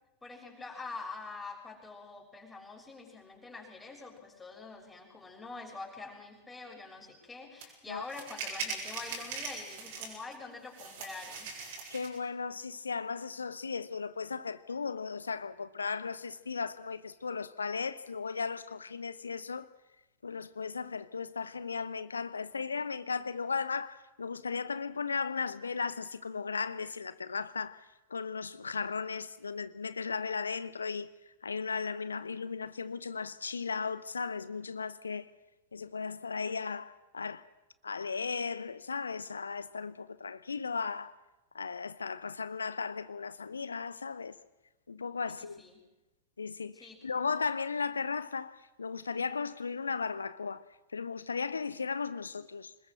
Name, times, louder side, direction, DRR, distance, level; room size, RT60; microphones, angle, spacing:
voice 1, 0.2-11.6 45.3-45.8 46.7-47.0, left 3 dB, 10° left, 6.5 m, -45 dB
sound 1, 7.6-7.7 8.1-10.3 10.7-12.2, right 4 dB, 55° right, 6.6 m, -40 dB
voice 2, 11.9-19.7 20.2-27.8 28.1-31.1 31.4-35.3 35.7-37.4 37.8-41.2 41.5-44.3 44.9-45.6 46.4-50.6 50.9-52.7, left 5 dB, 75° left, 0.9 m, -36 dB
26.0 x 20.5 x 6.6 m
figure-of-eight pair, 90°, 0 cm